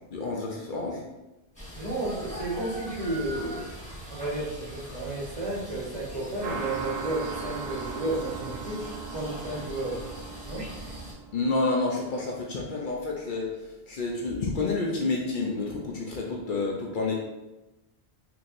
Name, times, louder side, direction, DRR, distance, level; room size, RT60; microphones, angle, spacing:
voice 1, 0.1-1.0 11.3-13.5 13.9-17.1, left 3 dB, 60° left, -1 dB, 0.7 m, -29 dB
sound 1, 1.5-11.1, equal, 5° left, 1.0 m, -41 dB
voice 2, 1.7-3.6 4.1-8.8 9.1-10.0 10.5-10.6, right 1 dB, 45° right, -5 dB, 1.1 m, -32 dB
sound 2, 6.4-11.7, right 6 dB, 85° right, 1.0 m, -38 dB
4.5 x 2.7 x 2.5 m, 1.0 s
omnidirectional pair, 1.0 m